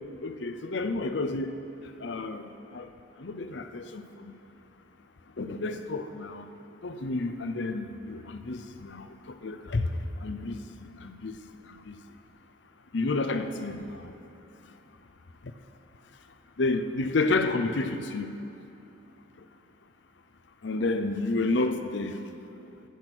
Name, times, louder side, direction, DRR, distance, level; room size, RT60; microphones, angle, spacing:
voice 1, 0.2-1.6 1.8-2.9 3.2-4.4 5.3-6.5 6.8-12.2 12.9-14.1 14.6-14.8 15.4-15.5 16.1-16.2 16.6-18.4 19.4-19.5 20.6-22.2, left 2 dB, 60° left, 8 dB, 0.6 m, -31 dB
17.0 x 6.2 x 6.1 m, 2.7 s
head